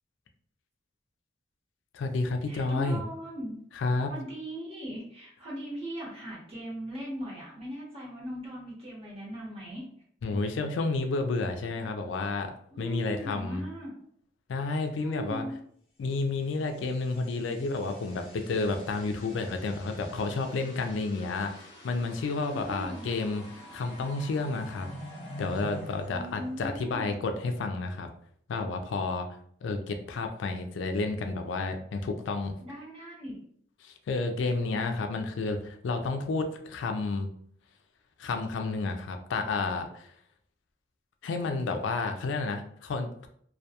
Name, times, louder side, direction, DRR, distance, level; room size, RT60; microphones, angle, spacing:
voice 1, 1.9-3.0 3.8-4.1 10.2-13.6 14.5-15.4 16.0-24.9 25.4-28.1 28.5-29.3 29.6-32.6 33.8-37.3 38.2-40.1 41.2-43.3, left 3 dB, 75° left, 6 dB, 0.3 m, -31 dB
voice 2, 2.5-3.6 4.1-9.8 12.7-14.0 15.0-15.5 22.5-23.1 26.1-27.1 32.6-33.4, equal, 35° right, -5 dB, 1.0 m, -39 dB
sound 1, 16.5-27.2, equal, 30° left, 0.8 m, -47 dB
2.2 x 2.2 x 2.7 m, 0.63 s
head